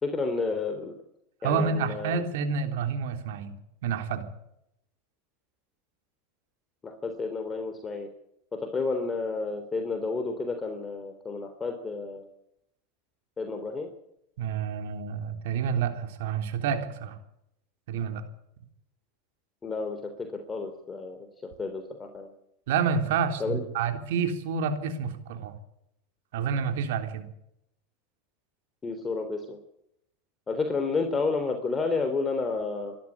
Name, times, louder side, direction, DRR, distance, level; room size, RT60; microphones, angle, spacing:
voice 1, 0.0-0.9 1.4-2.2 6.8-8.1 8.5-12.3 13.4-13.9 19.6-21.3 21.6-22.3 23.4-23.6 28.8-29.6 30.5-33.0, left 4 dB, 20° left, 5 dB, 3.5 m, -31 dB
voice 2, 1.4-3.6 3.8-4.3 14.4-17.2 17.9-18.2 22.7-25.5 26.3-27.3, right 6 dB, 75° right, 7 dB, 3.5 m, -29 dB
25.5 x 13.0 x 8.5 m, 0.80 s
hypercardioid pair, 105°, 0 cm